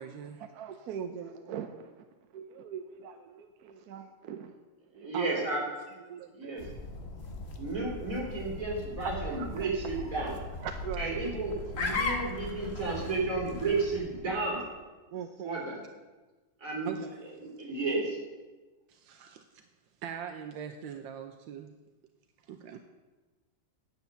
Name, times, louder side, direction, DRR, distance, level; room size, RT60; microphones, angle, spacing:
voice 1, 0.0-0.4 5.1-5.5 16.8-17.2 18.9-19.6 20.0-21.7 22.5-22.8, right 8 dB, 80° right, 6 dB, 1.4 m, -41 dB
voice 2, 0.5-2.0 2.3-4.5 5.0-5.1 6.1-6.7 9.4-9.7 10.6-11.2 11.9-12.0 15.1-15.6, right 8 dB, 65° right, 7 dB, 1.0 m, -41 dB
voice 3, 5.0-5.6 6.3-6.6 7.6-10.3 11.0-14.6 15.4-15.8 16.6-16.9 17.4-18.2, right 3 dB, 45° right, -3 dB, 3.6 m, -32 dB
sound 1, 6.6-14.6, left 3 dB, 40° left, 1.2 m, -38 dB
9.4 x 8.0 x 6.9 m, 1.2 s
omnidirectional pair, 2.0 m